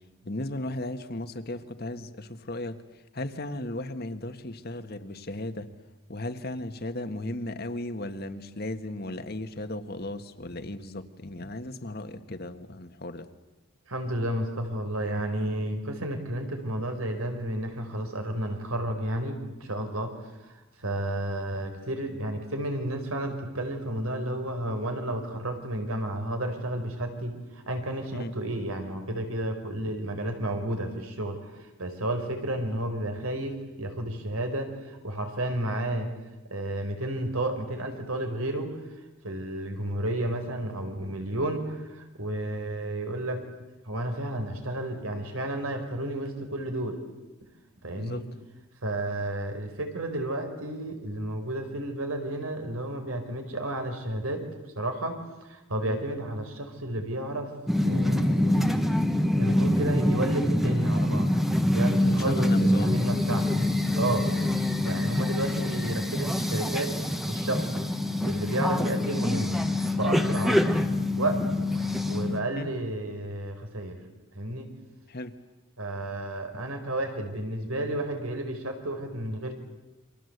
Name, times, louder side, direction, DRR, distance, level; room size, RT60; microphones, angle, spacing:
voice 1, 0.2-2.8 3.1-5.7 6.1-13.2 28.1-28.3 48.0-48.2 55.8-56.0 62.2-62.9 64.3-64.5 72.6-72.7 75.1-75.3, left 1 dB, 50° left, 8 dB, 1.6 m, -36 dB
voice 2, 13.9-20.1 20.8-36.1 36.5-38.7 39.2-43.4 43.8-47.0 47.8-48.3 48.8-54.5 54.8-55.2 55.5-57.5 57.8-58.9 59.4-61.3 61.7-63.5 64.0-64.3 64.8-66.9 67.3-67.7 68.2-69.6 70.0-70.6 71.2-71.4 72.0-74.0 74.3-74.7 75.8-79.5, right 1 dB, 90° right, 5 dB, 4.9 m, -31 dB
sound 1, 57.7-72.4, left 1 dB, ahead, 1.3 m, -25 dB
29.0 x 25.0 x 8.1 m, 1.0 s
head